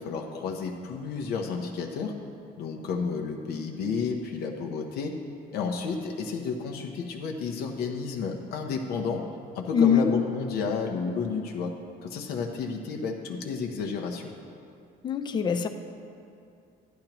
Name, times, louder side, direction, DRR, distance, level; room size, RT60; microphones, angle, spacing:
voice 1, 0.0-2.2 2.6-5.2 5.5-9.2 9.5-11.7 12.0-14.3, left 5 dB, 65° left, 2 dB, 0.8 m, -31 dB
voice 2, 9.7-10.1 15.0-15.7, left 7 dB, 25° left, 7 dB, 0.4 m, -22 dB
12.0 x 10.5 x 3.0 m, 2.5 s
cardioid pair, 155°, 17 cm